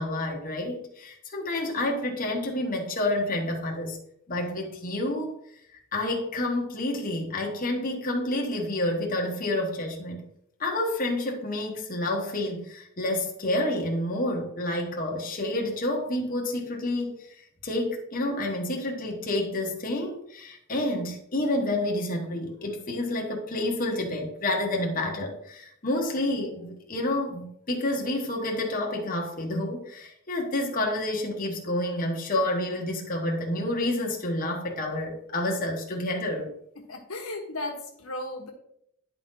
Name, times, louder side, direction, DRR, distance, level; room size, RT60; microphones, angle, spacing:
voice 1, 0.0-4.0 4.3-5.3 5.9-10.3 10.6-17.3 17.6-36.5, left 1 dB, 40° left, 0 dB, 1.2 m, -29 dB
voice 2, 36.8-38.5, left 2 dB, 85° left, 2 dB, 1.3 m, -35 dB
10.0 x 4.1 x 3.8 m, 0.72 s
head